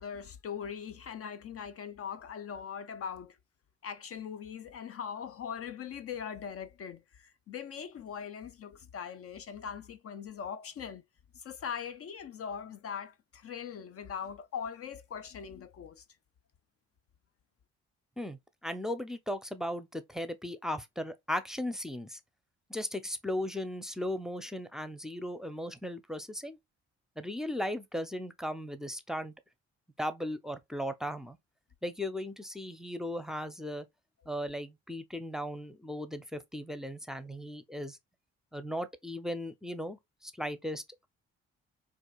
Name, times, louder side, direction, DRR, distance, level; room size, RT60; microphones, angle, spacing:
voice 1, 0.0-3.4 3.8-11.0 11.3-16.0, left 7 dB, 50° left, 0.5 m, -41 dB
voice 2, 18.2-22.2 22.7-26.6 27.2-29.3 30.0-31.4 31.8-33.9 34.3-38.0 38.5-40.8, left 1 dB, ahead, 0.7 m, -37 dB
4.3 x 2.6 x 2.4 m
hypercardioid pair, 55°, 30 cm